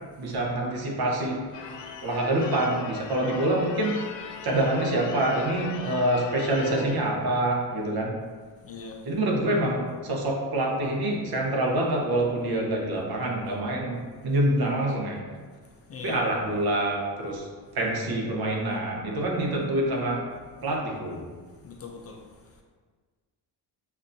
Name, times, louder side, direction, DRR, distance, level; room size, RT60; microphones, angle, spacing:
voice 1, 0.2-1.5 2.0-4.0 4.4-8.2 9.0-15.3 16.0-17.5 17.7-20.3 20.6-21.2, right 1 dB, 60° right, -1 dB, 1.0 m, -26 dB
Church bell / Car / Alarm, 1.5-7.1, left 6 dB, 90° left, 0.6 m, -40 dB
voice 2, 8.6-9.0 15.9-16.2 21.6-22.2, left 5 dB, 35° left, 1 dB, 0.5 m, -40 dB
7.3 x 2.6 x 2.7 m, 1.5 s
cardioid pair, 120°, 43 cm